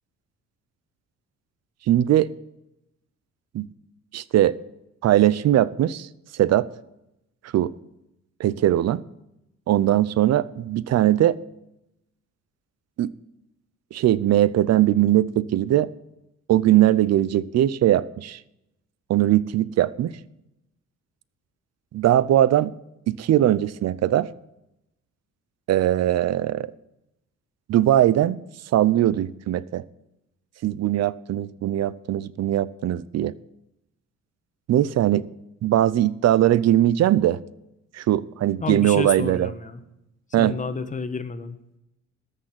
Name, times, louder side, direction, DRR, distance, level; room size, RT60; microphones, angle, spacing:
voice 1, 1.9-2.3 3.5-3.6 4.1-4.5 5.0-6.1 6.3-6.7 7.5-7.7 8.4-9.0 9.7-11.4 13.0-13.1 13.9-15.9 16.5-18.4 19.1-20.1 21.9-22.7 23.1-24.3 25.7-26.7 27.7-28.4 28.7-29.8 30.6-33.3 34.7-35.3 35.6-37.4 37.9-39.5 40.3-40.5, right 12 dB, 60° right, 20 dB, 0.6 m, -20 dB
voice 2, 38.6-39.8 40.3-41.6, left 4 dB, 25° left, 10 dB, 1.1 m, -30 dB
13.5 x 6.6 x 7.6 m, 0.88 s
cardioid pair, 90°, 30 cm